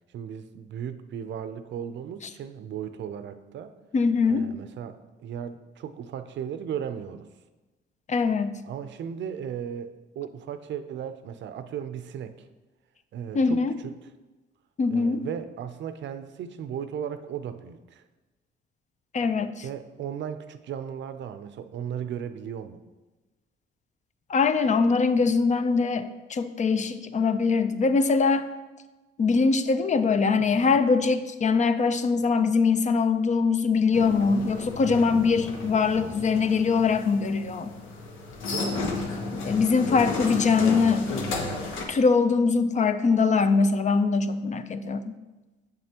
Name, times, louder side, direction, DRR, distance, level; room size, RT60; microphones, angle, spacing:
voice 1, 0.1-3.7 4.3-7.3 8.7-12.5 13.1-13.9 14.9-18.0 19.6-22.8 38.5-38.9, right 8 dB, 65° right, 11 dB, 0.6 m, -36 dB
voice 2, 3.9-4.5 8.1-8.6 13.3-13.7 14.8-15.2 19.1-19.6 24.3-28.5 29.2-37.7 39.3-41.0 41.9-45.1, left 4 dB, 35° left, 11 dB, 0.5 m, -22 dB
sound 1, 33.9-41.8, left 3 dB, 90° left, 1.1 m, -33 dB
7.6 x 7.5 x 2.9 m, 1.1 s
cardioid pair, 90°, 20 cm